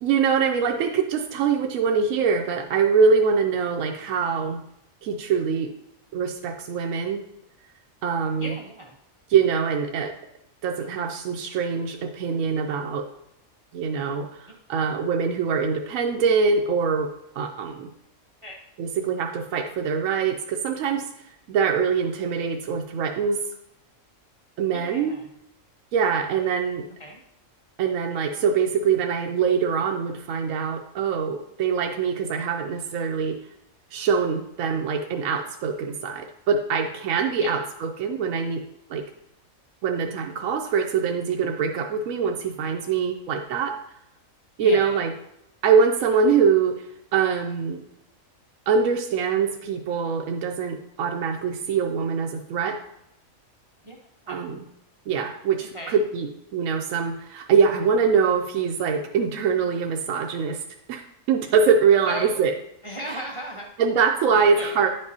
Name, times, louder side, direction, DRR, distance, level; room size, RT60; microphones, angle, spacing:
voice 1, 0.0-4.6 5.0-5.7 6.1-7.2 8.0-8.5 9.3-10.1 10.6-13.1 13.7-17.9 18.8-23.4 24.6-25.1 25.9-26.8 27.8-33.4 33.9-38.6 38.9-39.0 39.8-43.8 44.6-45.1 45.6-46.9 47.1-47.8 48.7-52.8 54.3-54.6 55.1-60.6 60.9-61.0 61.3-62.5 63.8-64.9, right 6 dB, 75° right, 2 dB, 1.0 m, -23 dB
voice 2, 8.4-9.0 14.5-14.6 18.4-18.6 24.7-25.3 27.0-27.2 37.4-37.5 44.6-45.0 53.8-54.4 55.7-56.0 62.1-62.4 62.8-63.7 64.3-64.9, right 1 dB, 30° right, -1 dB, 0.6 m, -36 dB
9.9 x 5.4 x 2.7 m, 0.82 s
omnidirectional pair, 1.4 m